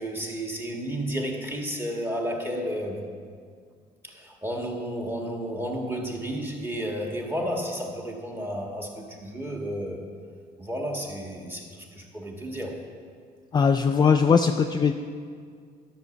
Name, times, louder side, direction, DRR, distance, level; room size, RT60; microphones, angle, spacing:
voice 1, 0.0-3.0 4.0-10.0 10.6-12.8, equal, 10° right, 0 dB, 1.7 m, -32 dB
voice 2, 13.5-14.9, left 6 dB, 25° left, 6 dB, 0.4 m, -20 dB
12.0 x 6.3 x 6.9 m, 2.1 s
cardioid pair, 130°, 18 cm